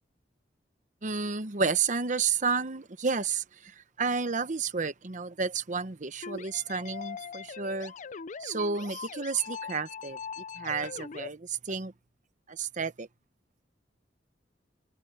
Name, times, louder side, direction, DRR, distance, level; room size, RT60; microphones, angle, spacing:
voice 1, 1.0-7.9 8.4-10.2 10.5-11.9 12.5-13.1, right 5 dB, 45° right, 1.0 m, -31 dB
sound 1, 6.2-11.3, left 6 dB, 45° left, 0.5 m, -41 dB
head